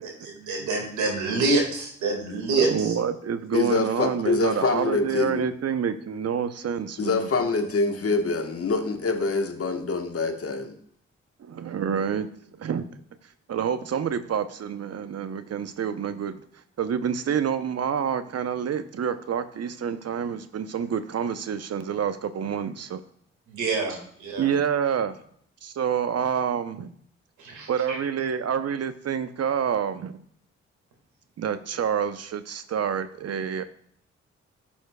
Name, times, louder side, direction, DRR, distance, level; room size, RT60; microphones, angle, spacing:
voice 1, 0.0-3.0 23.5-24.5 27.4-28.0, right 3 dB, 90° right, 1 dB, 1.9 m, -27 dB
voice 2, 2.7-7.3 11.4-12.3 12.6-12.9 13.5-16.4 16.8-23.0 24.4-25.2 25.6-26.9 27.7-30.2 31.4-33.6, right 7 dB, 60° right, 11 dB, 0.7 m, -28 dB
voice 3, 3.5-5.5 7.0-10.8, left 3 dB, 50° left, 6 dB, 1.2 m, -25 dB
12.0 x 7.2 x 2.2 m, 0.63 s
supercardioid pair, 40°, 29 cm